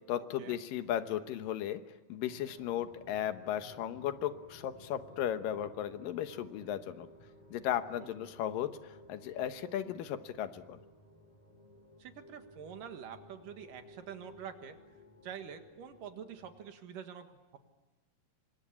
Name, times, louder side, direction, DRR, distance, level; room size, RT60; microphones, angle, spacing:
voice 1, 0.1-1.8 2.1-7.1 7.5-10.8, left 10 dB, 80° left, 10 dB, 2.8 m, -36 dB
sound 1, 2.2-16.7, left 1 dB, 10° left, 2.7 m, -57 dB
voice 2, 12.0-14.8 15.2-17.6, right 8 dB, 75° right, 7 dB, 3.3 m, -46 dB
27.0 x 24.5 x 8.5 m, 1.1 s
omnidirectional pair, 3.9 m